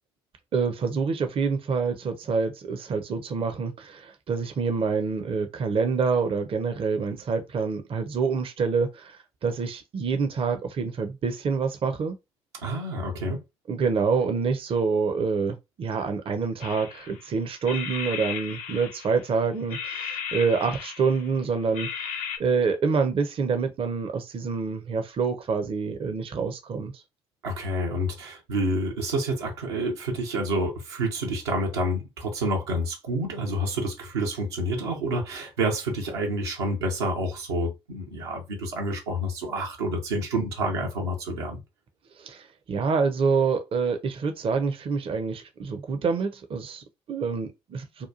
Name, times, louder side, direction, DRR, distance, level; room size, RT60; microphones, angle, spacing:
voice 1, 0.5-12.2 13.7-21.9 22.4-26.9 42.2-48.1, right 5 dB, 45° right, 0.5 m, -27 dB
voice 2, 12.6-13.4 27.4-41.6, right 1 dB, 85° right, 0.7 m, -28 dB
sound 1, 16.6-17.3 17.6-19.3 19.7-21.4 21.7-22.4, left 7 dB, 70° left, 0.5 m, -35 dB
2.9 x 2.2 x 2.4 m
hypercardioid pair, 45°, 14 cm